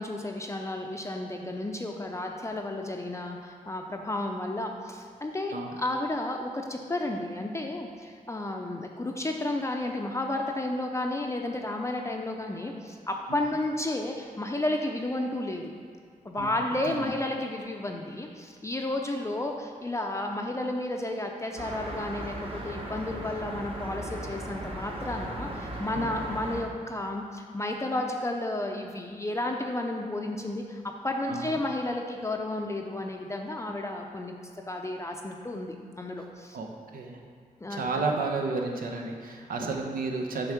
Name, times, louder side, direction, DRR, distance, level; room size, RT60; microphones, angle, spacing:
voice 1, 0.0-15.7 16.2-34.3 34.7-36.6 37.6-38.0, left 1 dB, 20° left, 2 dB, 0.5 m, -32 dB
voice 2, 16.3-17.1 25.9-26.1 31.3-31.6 36.5-36.7 36.9-37.2 37.7-40.5, right 3 dB, 90° right, 2 dB, 0.8 m, -32 dB
sound 1, 21.6-26.6, right 1 dB, 40° right, 1.1 m, -37 dB
7.0 x 3.5 x 5.8 m, 2.1 s
cardioid pair, 85°, 14 cm